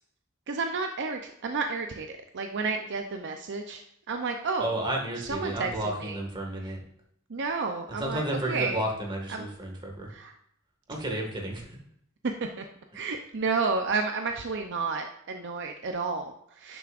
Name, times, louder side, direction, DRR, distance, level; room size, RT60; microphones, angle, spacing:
voice 1, 0.5-4.7 5.2-5.7 6.0-6.2 7.3-8.8 9.3-9.5 10.1-10.3 12.4-12.6 12.9-16.8, right 4 dB, 55° right, 5 dB, 0.6 m, -31 dB
voice 2, 4.6-6.8 8.0-10.1 10.9-11.7 12.9-13.0, right 1 dB, 20° right, 0 dB, 1.8 m, -32 dB
10.5 x 7.0 x 2.5 m, 0.71 s
head